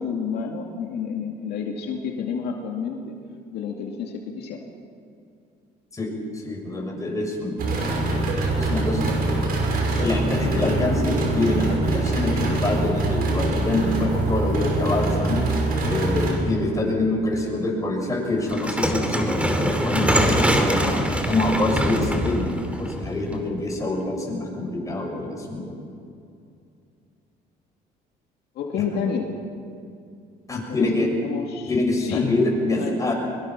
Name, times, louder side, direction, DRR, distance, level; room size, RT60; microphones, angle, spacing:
voice 1, 0.0-3.2 3.5-4.6 28.5-29.3 30.5-30.9 31.2-31.7 32.0-32.3 32.8-32.9, left 6 dB, 70° left, 1 dB, 2.4 m, -29 dB
voice 2, 6.3-7.6 8.6-9.1 10.0-15.4 15.8-20.8 21.3-25.7 28.9-29.0 30.5-31.1 31.7-33.1, left 2 dB, 20° left, 0 dB, 7.0 m, -25 dB
sound 1, 7.6-16.3, right 2 dB, 60° right, 6.3 m, -24 dB
sound 2, 18.5-23.6, equal, 5° right, 3.0 m, -23 dB
23.5 x 23.0 x 6.0 m, 2.5 s
cardioid pair, 110°, 17 cm